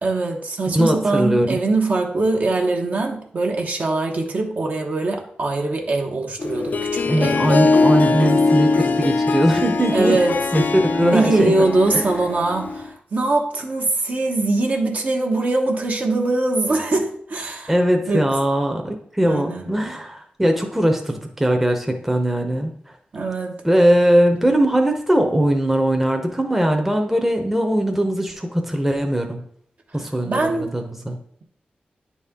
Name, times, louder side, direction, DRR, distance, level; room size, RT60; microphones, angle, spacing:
voice 1, 0.0-7.4 9.9-10.4 11.0-17.7 18.1-18.3 19.2-19.7 23.1-23.6 30.2-30.7, right 2 dB, 50° right, 2 dB, 1.0 m, -22 dB
voice 2, 0.7-1.6 7.0-10.2 10.5-11.5 11.9-12.0 17.7-22.7 23.6-29.4 29.9-31.2, right 1 dB, 5° right, 3 dB, 0.8 m, -20 dB
Harp, 6.4-12.9, left 3 dB, 55° left, 0.4 m, -21 dB
9.6 x 4.2 x 3.6 m, 0.64 s
wide cardioid pair, 130°, 3 cm